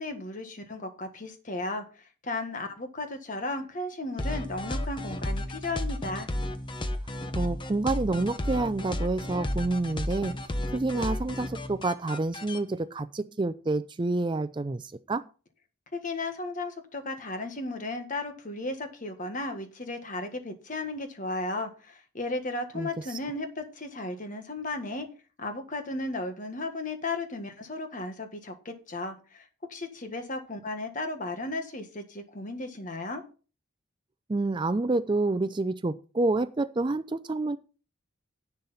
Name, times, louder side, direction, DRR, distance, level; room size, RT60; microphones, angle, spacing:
voice 1, 0.0-1.8 2.2-6.3 15.9-25.1 25.4-33.2, left 2 dB, 40° left, 7 dB, 1.5 m, -35 dB
sound 1, 4.2-12.6, left 1 dB, 25° left, 0.8 m, -33 dB
voice 2, 7.3-10.3 10.7-15.2 22.7-23.2 34.3-37.6, right 2 dB, 25° right, 13 dB, 0.4 m, -28 dB
10.5 x 8.1 x 4.2 m, 0.36 s
head